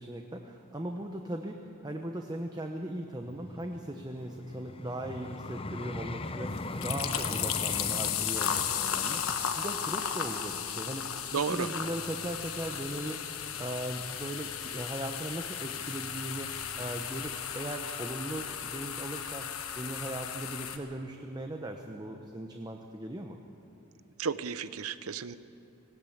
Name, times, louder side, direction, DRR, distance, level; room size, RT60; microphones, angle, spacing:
voice 1, 0.0-19.5 19.8-23.4, right 1 dB, 20° right, 4 dB, 0.9 m, -38 dB
Vehicle, 3.2-12.3 12.9-13.1, left 2 dB, 25° left, 0.6 m, -41 dB
sound 1, 6.5-20.8, left 8 dB, 75° left, 1.3 m, -35 dB
voice 2, 11.3-11.7 24.2-25.4, right 6 dB, 85° right, 14 dB, 0.8 m, -32 dB
18.5 x 17.0 x 8.7 m, 2.8 s
head